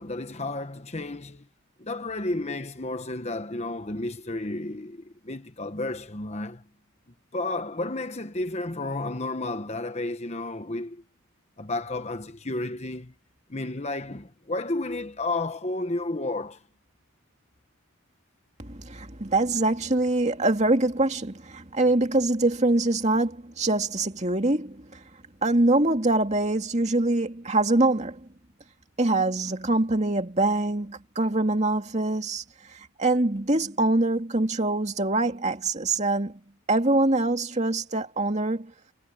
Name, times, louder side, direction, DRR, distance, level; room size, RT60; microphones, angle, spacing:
voice 1, 0.0-1.4 1.8-6.6 7.3-11.0 11.6-13.1 13.5-16.6, left 2 dB, 30° left, 1.1 m, -32 dB
voice 2, 18.6-25.0 25.4-28.2 29.0-32.4 32.7-36.3 36.7-38.7, right 2 dB, 30° right, 2.3 m, -24 dB
head